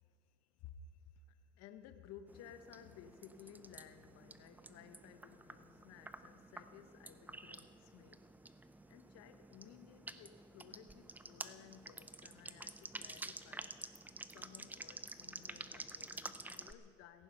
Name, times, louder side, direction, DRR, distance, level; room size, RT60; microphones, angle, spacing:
voice 1, 0.0-8.3 8.9-13.8 14.3-17.2, left 8 dB, 45° left, 9 dB, 1.0 m, -58 dB
sound 1, 2.3-16.7, right 2 dB, 5° right, 0.4 m, -51 dB
17.0 x 14.5 x 5.5 m, 2.4 s
supercardioid pair, 115°, 35 cm